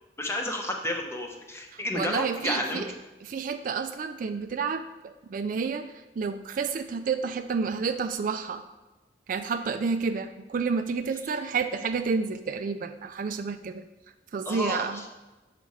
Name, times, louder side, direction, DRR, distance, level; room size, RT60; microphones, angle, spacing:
voice 1, 0.2-2.8 14.4-15.1, left 1 dB, 15° left, 2 dB, 0.8 m, -31 dB
voice 2, 1.9-2.8 3.2-4.8 5.3-5.9 6.2-8.6 9.3-13.8 14.3-15.0, right 5 dB, 50° right, 9 dB, 0.3 m, -29 dB
6.9 x 4.1 x 4.8 m, 1.1 s
head